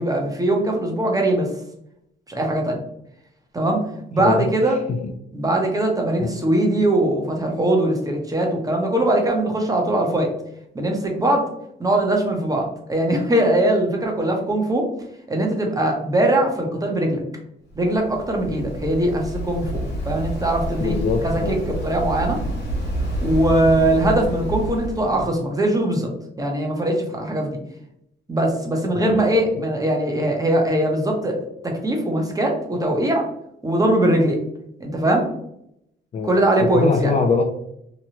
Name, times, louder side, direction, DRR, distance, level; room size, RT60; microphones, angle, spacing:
voice 1, 0.0-1.5 2.3-2.8 3.5-4.8 5.3-10.3 10.7-11.5 11.8-14.9 15.3-17.2 17.8-21.0 21.2-22.4 23.2-26.1 26.4-27.6 28.3-33.3 33.6-34.4 34.8-35.3 36.2-37.1, right 1 dB, 15° right, 1 dB, 0.8 m, -21 dB
voice 2, 4.2-5.0 6.2-6.3 20.8-21.6 29.0-29.3 36.1-37.4, left 4 dB, 35° left, 4 dB, 0.4 m, -23 dB
Waves surf, 17.7-25.3, right 1 dB, 60° left, 1.4 m, -28 dB
2.9 x 2.2 x 2.8 m, 0.76 s
cardioid pair, 90°, 20 cm